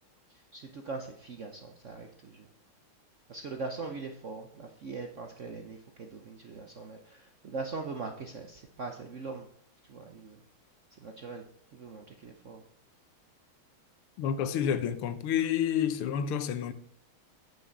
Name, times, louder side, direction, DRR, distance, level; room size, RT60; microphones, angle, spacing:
voice 1, 0.5-2.5 3.3-9.5 9.9-10.4 11.0-11.4 11.7-12.6, right 3 dB, 60° right, 0.8 m, -41 dB
voice 2, 14.2-16.7, left 9 dB, 85° left, 1.7 m, -29 dB
8.0 x 6.3 x 7.0 m
omnidirectional pair, 2.3 m